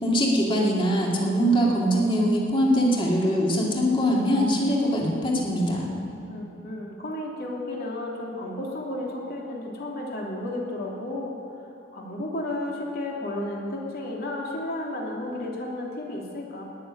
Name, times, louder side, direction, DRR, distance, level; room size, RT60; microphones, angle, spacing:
voice 1, 0.0-5.9, equal, 25° left, -3 dB, 2.4 m, -22 dB
voice 2, 6.3-11.3 11.9-16.6, left 1 dB, 50° left, -2 dB, 2.8 m, -33 dB
18.0 x 7.2 x 9.9 m, 2.7 s
head